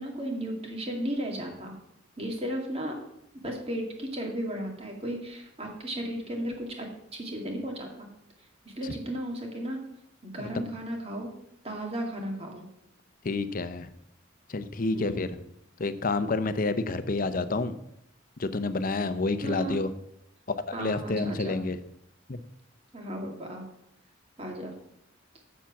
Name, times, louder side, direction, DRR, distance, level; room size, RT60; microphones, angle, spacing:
voice 1, 0.0-1.7 2.2-3.0 3.4-8.1 8.7-9.8 10.2-11.3 11.6-12.6 14.9-15.3 18.9-19.8 20.7-21.6 22.9-23.6 24.4-24.7, right 1 dB, 30° right, 2 dB, 2.0 m, -35 dB
voice 2, 13.2-13.9 14.5-15.3 15.8-17.8 18.4-19.9 20.5-21.8 22.3-22.4, left 3 dB, 45° left, 11 dB, 0.7 m, -29 dB
7.3 x 7.2 x 7.1 m, 0.79 s
head